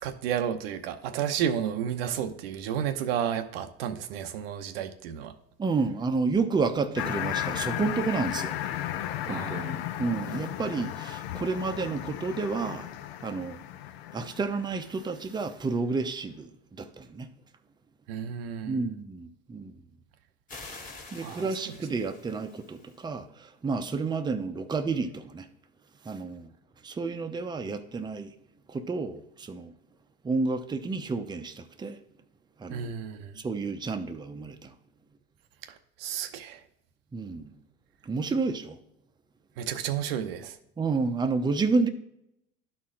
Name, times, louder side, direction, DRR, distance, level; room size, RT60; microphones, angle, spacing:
voice 1, 0.0-5.3 9.3-9.8 18.1-18.9 21.2-21.8 32.7-33.4 35.7-36.6 39.6-40.6, right 9 dB, 85° right, 0.7 m, -32 dB
voice 2, 5.6-8.6 9.3-12.9 13.2-13.6 14.1-17.3 18.6-19.8 20.6-20.7 21.1-25.5 26.0-26.5 26.8-28.3 28.7-29.7 30.2-32.0 32.6-32.9 33.4-34.7 37.1-37.5 38.1-38.8 40.8-41.9, right 4 dB, 15° right, 0.6 m, -30 dB
sound 1, 6.9-15.0, left 12 dB, 85° left, 0.6 m, -35 dB
sound 2, 20.5-23.1, left 3 dB, 25° left, 1.6 m, -47 dB
11.5 x 4.3 x 3.7 m
supercardioid pair, 95°, 29 cm